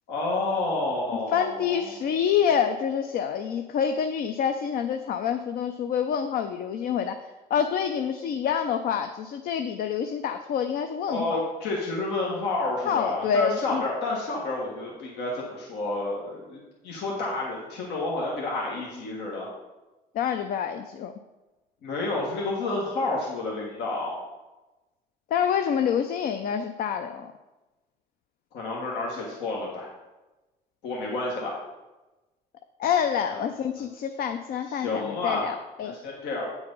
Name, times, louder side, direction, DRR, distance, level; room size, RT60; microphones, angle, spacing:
voice 1, 0.1-2.0 11.1-19.5 21.8-24.2 28.5-29.9 30.8-31.6 33.3-33.4 34.7-35.5 36.0-36.4, left 2 dB, 85° left, -3 dB, 1.6 m, -30 dB
voice 2, 1.3-7.2 7.5-11.4 12.8-13.8 20.1-21.1 25.3-27.3 32.8-35.9, left 8 dB, 60° left, 7 dB, 0.5 m, -27 dB
8.6 x 4.8 x 5.4 m, 1.1 s
cardioid pair, 110°, 17 cm